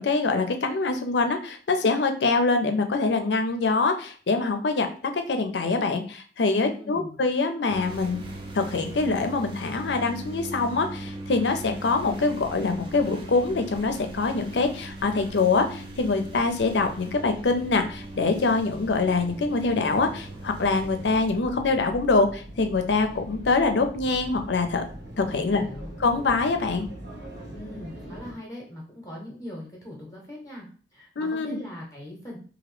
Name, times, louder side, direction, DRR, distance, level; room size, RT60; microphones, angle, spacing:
voice 1, 0.0-8.2 8.5-24.8 25.2-25.6 26.0-26.9 31.2-31.6, left 3 dB, 80° left, 7 dB, 0.5 m, -24 dB
voice 2, 6.6-7.2 25.4-25.9 27.5-30.7 30.9-32.4, left 1 dB, 15° left, -2 dB, 0.7 m, -40 dB
sound 1, 7.7-21.3, right 1 dB, 30° right, 0.5 m, -39 dB
sound 2, 17.8-28.3, equal, 85° right, 1.1 m, -42 dB
3.0 x 2.6 x 3.1 m, 0.42 s
head